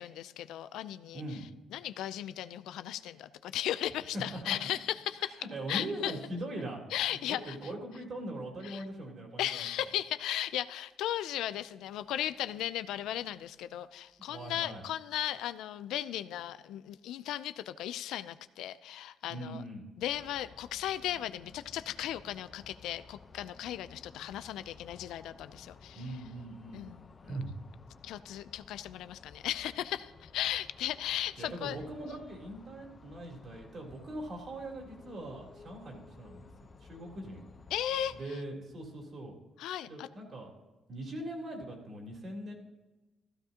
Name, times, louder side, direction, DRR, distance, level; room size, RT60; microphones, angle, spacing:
voice 1, 0.0-1.2 1.7-6.1 6.9-7.6 8.6-8.8 9.4-19.6 20.0-26.0 26.7-27.1 28.0-31.8 37.7-38.1 39.6-40.1, left 12 dB, 85° left, 13 dB, 0.5 m, -36 dB
voice 2, 1.1-1.5 4.1-4.6 5.4-6.8 7.2-9.6 14.2-14.8 19.3-19.9 25.9-26.8 27.2-27.6 31.4-36.5 36.8-37.4 38.2-39.4 39.8-40.5 40.9-42.5, right 1 dB, 50° right, 0 dB, 3.3 m, -41 dB
sound 1, 20.0-38.3, left 4 dB, 35° left, 0.8 m, -55 dB
15.0 x 13.5 x 2.9 m, 1.1 s
cardioid pair, 90°, 0 cm